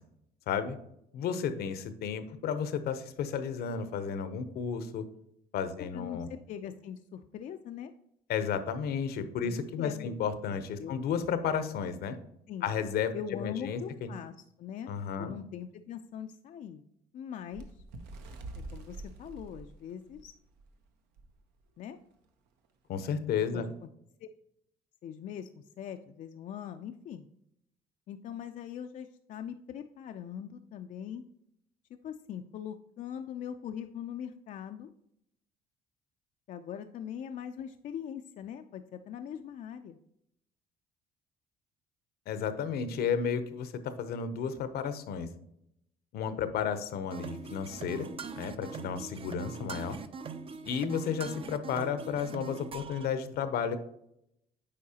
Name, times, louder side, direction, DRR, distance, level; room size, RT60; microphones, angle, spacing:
voice 1, 0.5-0.8 1.1-5.0 5.5-6.3 8.3-12.2 12.6-14.1 14.9-15.3 22.9-23.7 42.3-45.3 46.1-48.1 48.3-50.0 50.6-53.8, left 7 dB, 70° left, 11 dB, 0.7 m, -33 dB
voice 2, 5.9-7.9 9.4-10.2 10.5-11.0 12.5-12.7 13.1-14.3 14.6-14.9 15.2-16.8 17.1-17.7 18.7-20.3 21.8-22.0 23.5-23.7 24.2-24.3 25.0-27.3 28.1-31.2 32.0-34.9 36.5-40.0, left 9 dB, 50° left, 7 dB, 0.4 m, -41 dB
Bird, 17.5-20.7 21.2-21.3 21.6-21.9 22.6-22.7, right 2 dB, 85° right, 0.8 m, -45 dB
sound 1, 47.1-53.1, right 5 dB, 35° right, 0.4 m, -42 dB
8.4 x 4.7 x 2.8 m, 0.77 s
cardioid pair, 110°, 17 cm